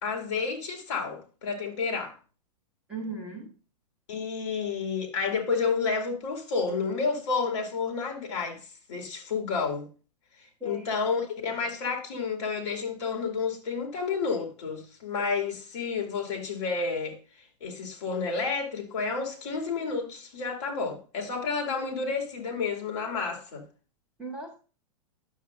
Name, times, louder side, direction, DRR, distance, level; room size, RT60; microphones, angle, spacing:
voice 1, 0.0-2.2 4.1-8.6 8.9-9.9 10.6-17.2 17.6-23.6, left 5 dB, 50° left, 2.6 m, -30 dB
voice 2, 2.9-3.5 10.6-10.9 11.5-11.6 24.2-24.6, right 1 dB, 5° right, 1.5 m, -37 dB
9.9 x 7.1 x 2.6 m
supercardioid pair, 180°, 20 cm